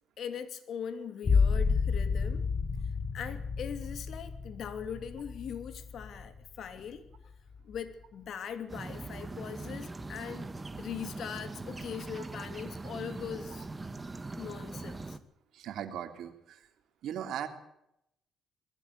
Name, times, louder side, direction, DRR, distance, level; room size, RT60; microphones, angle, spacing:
voice 1, 0.2-2.5 3.1-7.1 7.6-10.5 10.8-13.7 14.4-15.2, left 8 dB, 65° left, 10 dB, 2.9 m, -41 dB
sound 1, 1.2-6.7 7.2-7.8, left 5 dB, 40° left, 3.0 m, -31 dB
sound 2, 8.7-15.2, right 3 dB, 20° right, 1.9 m, -41 dB
voice 2, 15.5-16.6 17.0-17.5, right 9 dB, 75° right, 7 dB, 3.2 m, -38 dB
20.5 x 15.5 x 8.3 m, 0.78 s
cardioid pair, 90°, 0 cm